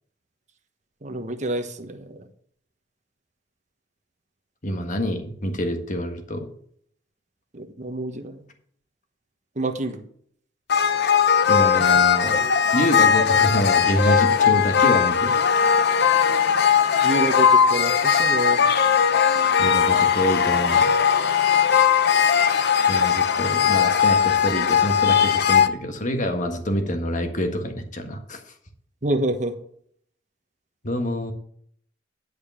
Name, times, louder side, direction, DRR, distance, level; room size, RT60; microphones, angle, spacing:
voice 1, 1.0-2.3 7.5-8.4 9.5-10.0 17.0-18.6 29.0-29.5, right 1 dB, 40° right, 6 dB, 1.2 m, -27 dB
voice 2, 4.6-6.5 11.5-12.4 12.7-15.3 19.6-20.9 22.9-28.4 30.8-31.3, equal, 45° left, 5 dB, 1.6 m, -26 dB
sound 1, 10.7-25.7, left 7 dB, 60° left, 0.7 m, -19 dB
11.0 x 5.0 x 6.9 m, 0.64 s
head